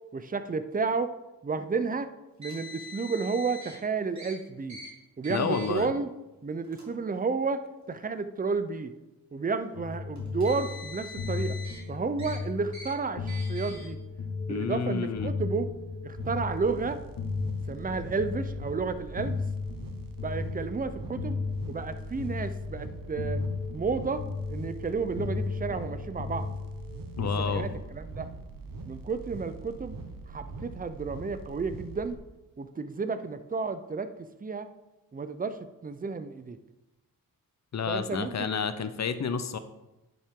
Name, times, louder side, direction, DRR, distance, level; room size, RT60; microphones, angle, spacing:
voice 1, 0.1-1.1 1.4-2.1 2.4-4.8 5.2-6.1 6.4-7.6 7.9-8.9 9.3-11.6 11.9-14.0 14.5-15.7 16.0-17.0 17.7-19.4 20.2-21.4 21.7-23.4 23.7-24.2 24.5-26.5 27.2-28.3 28.9-29.9 30.3-32.2 32.6-34.7 35.1-35.6 35.8-36.6 37.9-38.6, right 4 dB, 25° right, 11 dB, 0.6 m, -31 dB
Car, 2.4-3.8 4.1-4.3 4.7-4.9 5.2-5.8 6.6-6.8 7.8-7.9 10.2-11.8 12.2-12.4 12.7-12.9 13.3-13.8, left 1 dB, 55° right, 2.7 m, -43 dB
voice 2, 5.3-5.9 14.5-15.3 27.2-27.7 37.7-39.6, left 6 dB, 50° left, 11 dB, 0.7 m, -30 dB
sound 1, 9.7-27.8, left 4 dB, 70° left, 1.6 m, -35 dB
sound 2, 16.2-32.2, right 3 dB, 70° right, 1.0 m, -43 dB
10.5 x 5.5 x 3.7 m, 0.99 s
cardioid pair, 80°, 35 cm